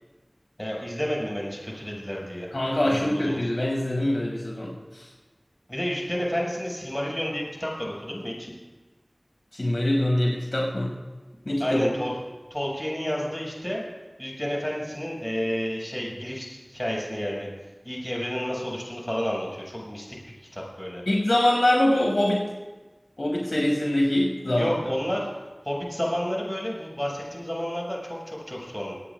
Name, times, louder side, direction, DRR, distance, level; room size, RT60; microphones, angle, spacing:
voice 1, 0.6-2.5 2.8-3.4 5.7-8.5 11.6-12.2 12.5-13.8 14.2-17.5 17.8-20.2 20.5-21.0 24.5-25.3 25.6-28.9, equal, 20° left, -3 dB, 5.9 m, -30 dB
voice 2, 2.5-5.1 9.5-10.9 11.4-11.9 21.1-22.4 23.2-24.7, left 1 dB, 70° left, -2 dB, 6.3 m, -24 dB
26.5 x 19.0 x 2.4 m, 1.2 s
wide cardioid pair, 45°, 0 cm